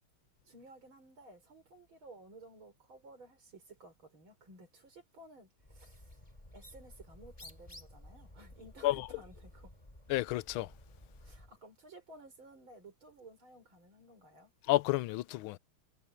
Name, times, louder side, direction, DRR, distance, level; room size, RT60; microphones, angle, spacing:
voice 1, 0.4-6.2 6.5-9.7 11.2-14.5, right 2 dB, 65° right, 6.2 m, -55 dB
Bird, 5.6-11.6, left 1 dB, 15° left, 3.8 m, -54 dB
voice 2, 10.1-10.7 14.7-15.6, left 16 dB, 75° left, 1.4 m, -31 dB
omnidirectional pair, 2.4 m